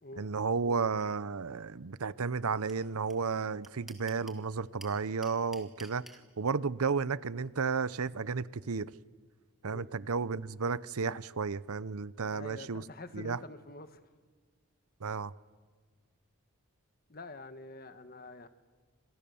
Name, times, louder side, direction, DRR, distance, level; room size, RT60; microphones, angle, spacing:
voice 1, 0.2-6.0 6.4-8.9 9.6-12.8 13.1-13.4 15.0-15.3, right 5 dB, 85° right, 0.7 m, -33 dB
sound 1, 2.7-2.8 3.1-3.2 3.4-4.4 4.8-6.2, equal, ahead, 2.2 m, -49 dB
voice 2, 12.3-14.0 17.1-18.5, left 2 dB, 40° left, 1.5 m, -47 dB
30.0 x 27.0 x 7.0 m
head